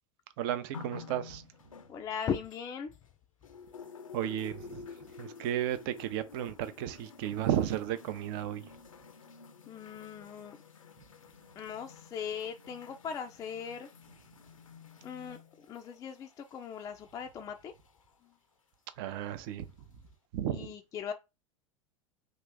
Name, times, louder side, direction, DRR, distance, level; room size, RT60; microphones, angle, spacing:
voice 1, 0.4-1.4 4.1-4.9 5.2-8.6 19.0-19.7 20.3-20.7, right 11 dB, 45° right, 0.5 m, -33 dB
sound 1, 0.7-3.1 3.4-18.1 19.0-19.1, left 6 dB, 80° left, 0.5 m, -51 dB
voice 2, 1.9-2.9 9.7-10.6 11.6-13.9 15.0-15.4 15.7-17.7 20.5-21.1, left 7 dB, 20° left, 0.4 m, -39 dB
2.9 x 2.5 x 3.4 m
figure-of-eight pair, 85°, 17 cm